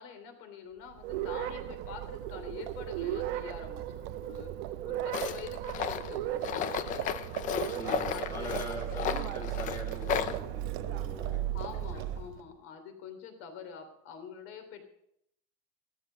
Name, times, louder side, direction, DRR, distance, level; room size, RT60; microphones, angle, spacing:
voice 1, 0.0-4.5 4.8-7.1 8.1-9.4 11.4-14.8, left 7 dB, 45° left, 7 dB, 3.1 m, -46 dB
Livestock farm animals working animals, 0.9-12.5, right 13 dB, 40° right, 0.7 m, -38 dB
sound 1, 1.0-9.0, right 12 dB, 60° right, 1.4 m, -38 dB
Tools, 5.1-10.4, left 8 dB, 25° left, 0.6 m, -34 dB
voice 2, 7.7-11.4 11.9-12.0, right 1 dB, 10° left, -1 dB, 2.4 m, -42 dB
15.0 x 13.5 x 5.1 m, 0.74 s
cardioid pair, 180°, 32 cm